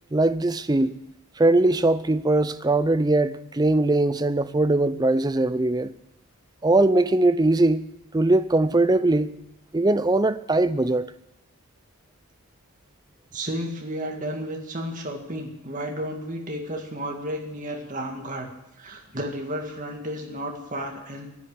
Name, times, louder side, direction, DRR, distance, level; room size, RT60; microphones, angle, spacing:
voice 1, 0.1-1.0 1.4-5.9 6.6-7.9 8.1-9.4 9.7-11.1, right 2 dB, 15° right, 0.4 m, -21 dB
voice 2, 13.3-18.5 18.8-21.3, equal, 35° right, 2.2 m, -32 dB
10.5 x 9.3 x 9.7 m
head